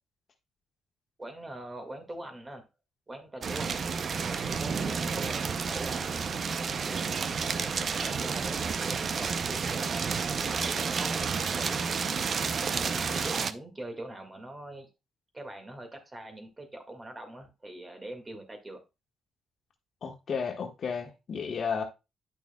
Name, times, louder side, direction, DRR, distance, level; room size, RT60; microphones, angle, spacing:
voice 1, 1.2-2.6 3.1-3.8 4.2-12.0 12.7-14.9 15.3-18.8, right 1 dB, 20° right, 1.9 m, -43 dB
sound 1, 3.4-13.5, right 5 dB, 50° right, 0.5 m, -30 dB
voice 2, 20.0-21.8, left 6 dB, 50° left, 1.4 m, -33 dB
9.3 x 6.0 x 2.2 m
cardioid pair, 90°, 0 cm